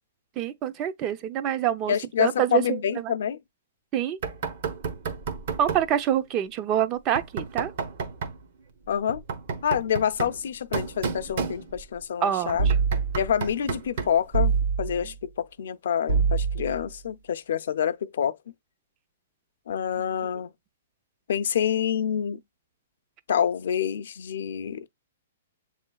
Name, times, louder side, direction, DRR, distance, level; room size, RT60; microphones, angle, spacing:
voice 1, 0.4-3.1 3.9-4.2 5.6-7.7 12.2-12.8, right 10 dB, 25° right, 0.5 m, -26 dB
voice 2, 1.9-3.4 8.9-9.2 9.6-12.7 13.2-14.5 14.8-18.4 19.7-20.5 21.3-22.4 23.3-24.9, left 8 dB, 70° left, 0.5 m, -27 dB
Knock, 4.2-5.9 7.2-8.4 9.1-12.0 12.5-14.3, right 5 dB, 55° right, 0.9 m, -32 dB
sound 1, 12.6-13.3 14.3-15.1 16.1-16.8, right 5 dB, 80° right, 1.2 m, -24 dB
7.2 x 3.1 x 2.3 m
hypercardioid pair, 155°, 0 cm